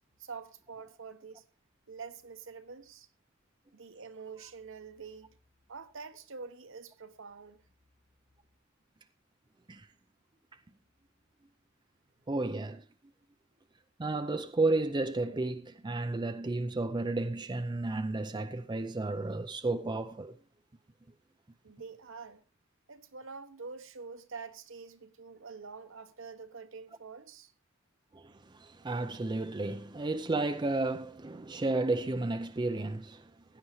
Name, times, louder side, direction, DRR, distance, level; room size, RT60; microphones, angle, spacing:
voice 1, 0.2-1.5 1.9-3.1 3.7-5.4 5.7-7.7 21.6-22.4 22.9-27.5, right 5 dB, 65° right, 1.1 m, -46 dB
voice 2, 12.3-12.9 14.0-20.4 28.1-33.6, right 2 dB, 20° right, 0.5 m, -32 dB
16.0 x 10.0 x 3.1 m
head